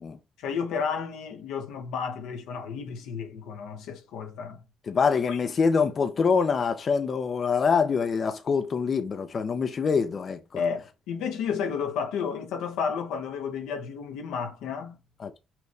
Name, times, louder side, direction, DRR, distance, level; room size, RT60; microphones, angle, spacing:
voice 1, 0.4-4.6 5.3-5.4 10.6-15.0, left 6 dB, 85° left, 0.9 m, -32 dB
voice 2, 4.8-10.6 15.2-15.4, left 5 dB, 50° left, 0.6 m, -25 dB
5.7 x 2.6 x 3.3 m
supercardioid pair, 75°, 0 cm